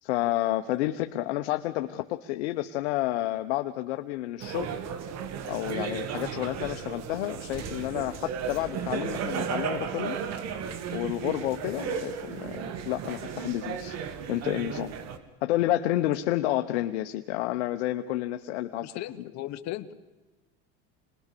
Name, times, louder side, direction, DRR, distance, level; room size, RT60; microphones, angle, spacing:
voice 1, 0.0-4.7 5.5-10.2 10.9-14.0 14.3-14.9 15.4-18.9, left 15 dB, 90° left, 7 dB, 1.1 m, -30 dB
sound 1, 4.4-15.2, right 7 dB, 50° right, 2.3 m, -34 dB
voice 2, 18.8-19.9, left 14 dB, 55° left, 13 dB, 1.5 m, -37 dB
27.0 x 20.5 x 6.8 m, 1.1 s
supercardioid pair, 115°, 33 cm